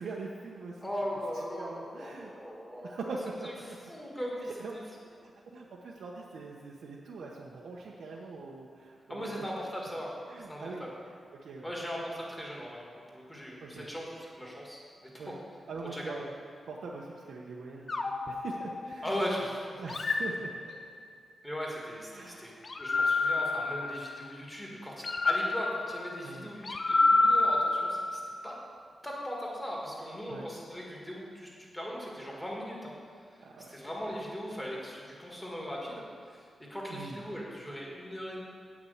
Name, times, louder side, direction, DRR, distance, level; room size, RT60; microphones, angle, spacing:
voice 1, 0.0-0.8 1.6-2.3 2.8-3.5 4.4-4.7 5.1-9.5 10.3-10.9 11.3-11.7 13.6-13.9 15.2-15.4 15.7-16.3 16.7-19.1 19.8-20.8 22.1-22.6 26.2-26.5 30.3-30.5 33.4-33.8 36.9-37.2, right 3 dB, 85° right, -3 dB, 1.0 m, -42 dB
voice 2, 0.8-3.2 3.4-4.8 9.1-10.1 10.5-10.9 11.6-12.8 13.1-15.2 15.9-16.1 19.0-19.8 21.4-22.5 22.8-28.5 29.0-32.9 33.7-38.4, equal, 10° left, -3 dB, 1.8 m, -39 dB
sound 1, 17.9-19.3 19.9-21.2 22.6-24.4 25.0-28.6, left 3 dB, 35° left, 0.6 m, -29 dB
8.6 x 6.1 x 7.9 m, 2.1 s
wide cardioid pair, 180°, 0 cm